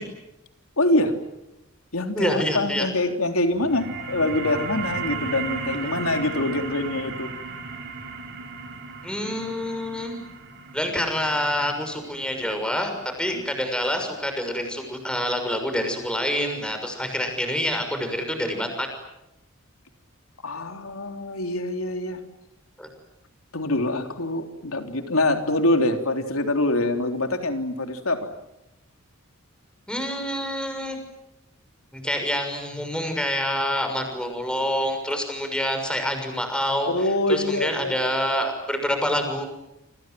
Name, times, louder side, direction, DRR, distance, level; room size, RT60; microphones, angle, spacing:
voice 1, 0.8-1.1 1.9-7.3 13.3-13.4 20.4-22.2 23.5-28.3 36.9-37.9, left 2 dB, 85° left, 6 dB, 3.6 m, -25 dB
voice 2, 2.1-2.9 9.0-10.2 10.7-12.9 13.2-18.9 22.8-22.9 29.9-31.0 31.9-36.9 37.3-39.4, equal, 5° left, 6 dB, 6.3 m, -27 dB
sound 1, 3.5-14.6, right 5 dB, 55° right, 5.4 m, -36 dB
29.0 x 26.0 x 7.8 m, 0.87 s
head